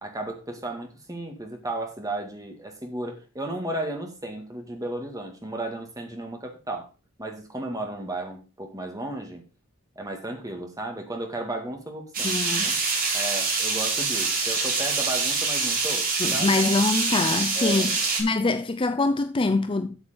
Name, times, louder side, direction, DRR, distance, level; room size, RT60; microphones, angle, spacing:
voice 1, 0.0-6.9 7.2-9.4 10.0-12.8 13.1-16.6 17.6-18.0 18.5-18.6, right 1 dB, 15° right, 2.0 m, -34 dB
sound 1, 12.1-18.2, right 4 dB, 40° right, 3.7 m, -25 dB
voice 2, 12.2-12.7 16.2-17.9 18.2-20.0, left 3 dB, 25° left, 0.4 m, -24 dB
8.9 x 7.0 x 5.1 m
head